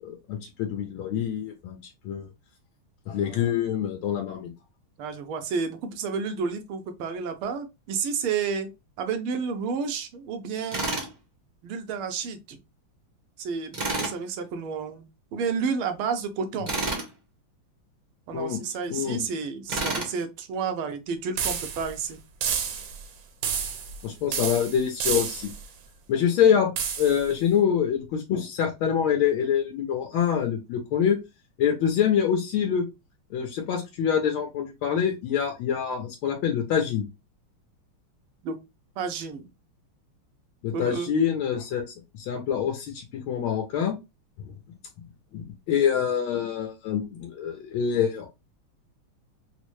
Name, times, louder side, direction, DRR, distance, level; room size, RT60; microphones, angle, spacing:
voice 1, 0.0-1.8 2.0-2.3 3.1-4.5 18.3-18.6 18.9-19.3 24.0-25.5 26.1-26.7 27.0-31.2 31.6-32.8 33.3-37.0 40.6-41.8 42.2-44.0 44.4-44.5 45.3-48.3, left 8 dB, 75° left, 1.5 m, -25 dB
voice 2, 3.2-3.6 5.0-8.7 9.0-10.9 11.6-12.6 13.4-15.0 15.3-16.7 18.3-22.2 38.4-38.6 39.0-39.5 40.7-41.1, right 5 dB, 85° right, 1.5 m, -31 dB
Tools, 10.7-11.1 13.7-14.2 16.7-17.1 19.7-20.1, right 2 dB, 45° right, 0.5 m, -29 dB
sound 1, 21.4-22.0 22.4-23.0 23.4-24.0 24.3-25.6 26.8-27.3, right 7 dB, 70° right, 1.3 m, -30 dB
4.2 x 2.1 x 3.0 m
omnidirectional pair, 2.3 m